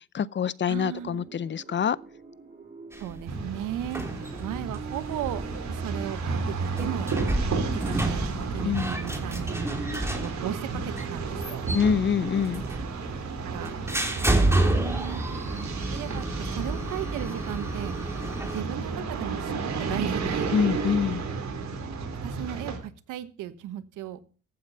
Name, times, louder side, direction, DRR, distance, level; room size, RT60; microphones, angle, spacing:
voice 1, 0.0-2.0 8.6-8.9 11.7-12.6 20.5-21.2, left 7 dB, 40° left, 0.6 m, -25 dB
voice 2, 0.6-1.3 3.0-4.0 4.4-7.1 7.7-8.3 8.5-9.9 10.2-11.6 13.4-13.8 14.5-15.2 15.5-17.9 18.4-20.5 22.2-24.2, right 12 dB, 90° right, 1.3 m, -36 dB
sound 1, 0.8-6.1, right 4 dB, 30° right, 4.5 m, -45 dB
sound 2, 2.9-18.6, right 1 dB, 10° right, 3.2 m, -31 dB
sound 3, 3.3-22.8, right 4 dB, 65° right, 4.1 m, -32 dB
15.0 x 8.7 x 5.5 m
cardioid pair, 90°, 30 cm